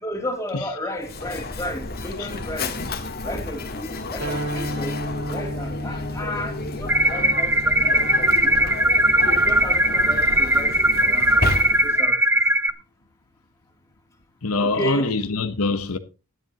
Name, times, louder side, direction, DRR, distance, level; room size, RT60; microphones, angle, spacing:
voice 1, 0.0-2.8 3.2-4.9 5.3-8.3 8.6-8.8 9.2-10.7 11.0-11.4 11.8-12.2 14.6-15.1, equal, 15° left, 2.8 m, -33 dB
Mechanisms, 1.0-12.1, left 2 dB, 45° left, 1.7 m, -31 dB
sound 1, 4.2-10.5, equal, 70° right, 3.8 m, -34 dB
sound 2, 6.9-12.7, right 1 dB, 10° right, 0.7 m, -19 dB
voice 2, 14.4-16.0, left 3 dB, 80° left, 1.0 m, -24 dB
16.5 x 11.0 x 2.9 m
head